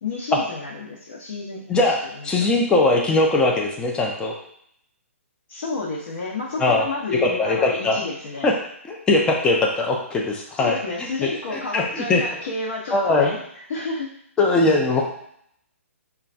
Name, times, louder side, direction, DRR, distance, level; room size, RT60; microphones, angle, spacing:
voice 1, 0.0-2.3 5.5-8.5 10.6-14.1, left 3 dB, 55° left, -5 dB, 0.8 m, -31 dB
voice 2, 1.7-4.3 6.6-6.9 7.2-8.0 8.4-8.5 8.9-10.7 11.2-12.2 12.9-13.3 14.4-15.0, left 2 dB, 10° left, -1 dB, 0.5 m, -20 dB
5.5 x 2.3 x 2.5 m, 0.70 s
figure-of-eight pair, 130°, 8 cm